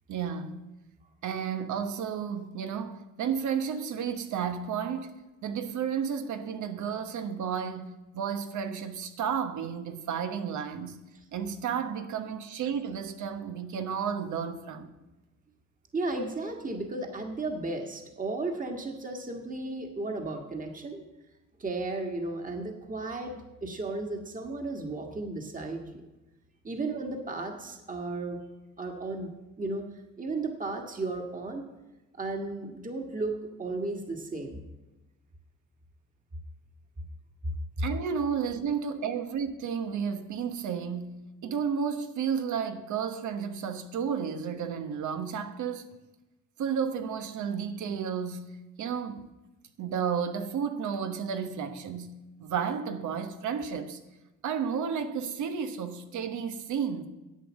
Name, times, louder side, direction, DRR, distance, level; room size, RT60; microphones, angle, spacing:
voice 1, 0.1-0.6 1.2-5.2 5.4-11.0 11.3-14.9 37.8-46.0 46.6-49.3 49.8-54.0 54.4-57.1, right 7 dB, 75° right, 1.2 m, -32 dB
voice 2, 15.9-21.0 21.6-26.0 26.6-28.4 28.8-29.3 29.6-29.9 30.2-31.6 32.2-34.6, right 2 dB, 25° right, 1.7 m, -34 dB
11.0 x 8.1 x 6.3 m
cardioid pair, 90°, 30 cm